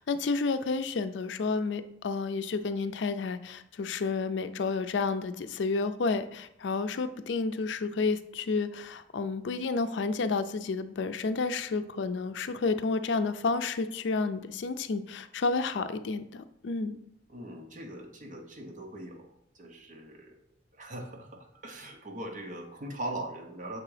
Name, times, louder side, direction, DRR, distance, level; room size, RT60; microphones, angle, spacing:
voice 1, 0.0-17.0, left 4 dB, 75° left, 11 dB, 0.4 m, -30 dB
voice 2, 17.3-19.3 19.6-20.4 20.8-23.8, right 1 dB, 45° right, 2 dB, 1.0 m, -40 dB
6.6 x 3.6 x 4.9 m, 0.75 s
head